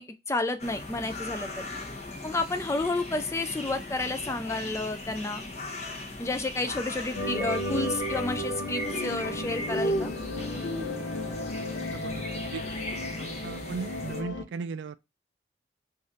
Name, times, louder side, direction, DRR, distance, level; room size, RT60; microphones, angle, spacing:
voice 1, 0.0-1.7 2.2-5.5 6.2-10.1, left 2 dB, 15° left, 0.3 m, -31 dB
sound 1, 0.6-14.2, left 1 dB, 40° left, 0.9 m, -37 dB
sound 2, 7.1-14.4, left 1 dB, 90° left, 0.6 m, -34 dB
voice 2, 11.9-12.6 13.2-15.0, right 5 dB, 80° right, 0.3 m, -37 dB
3.3 x 2.4 x 4.0 m
head